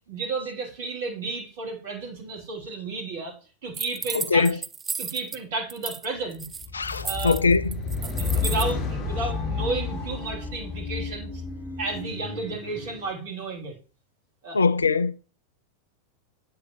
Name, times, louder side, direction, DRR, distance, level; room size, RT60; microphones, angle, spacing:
voice 1, 0.1-3.4 3.6-4.6 5.0-6.5 7.0-7.4 8.0-11.4 11.8-13.7 14.4-14.6, right 3 dB, 55° right, 3.1 m, -32 dB
sound 1, 3.7-5.4 5.7-6.1 6.3-8.7, right 5 dB, 15° right, 0.4 m, -34 dB
voice 2, 4.1-4.6 6.7-7.7 14.5-15.1, left 4 dB, 75° left, 0.4 m, -22 dB
sound 2, 6.6-13.1, left 5 dB, 35° left, 1.5 m, -31 dB
8.6 x 8.5 x 3.0 m
figure-of-eight pair, 90°, 0 cm